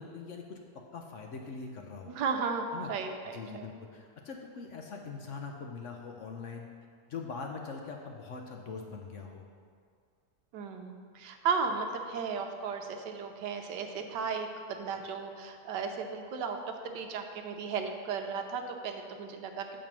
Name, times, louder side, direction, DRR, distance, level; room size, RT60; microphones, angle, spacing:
voice 1, 0.0-2.2 2.7-2.9 3.3-6.7 7.1-9.4, left 4 dB, 65° left, 2 dB, 0.8 m, -42 dB
voice 2, 2.1-3.7 10.5-19.8, right 5 dB, 85° right, 5 dB, 1.3 m, -35 dB
7.3 x 4.9 x 6.0 m, 2.2 s
omnidirectional pair, 1.8 m